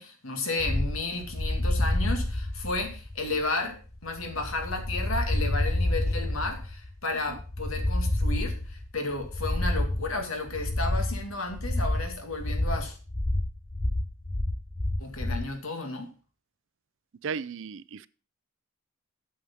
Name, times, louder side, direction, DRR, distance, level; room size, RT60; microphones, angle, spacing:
voice 1, 0.0-13.0 15.0-16.1, left 2 dB, 85° left, 2.2 m, -33 dB
sound 1, 0.6-15.5, left 1 dB, 15° left, 0.5 m, -29 dB
voice 2, 17.2-18.1, right 6 dB, 65° right, 0.4 m, -35 dB
8.5 x 6.5 x 5.6 m
head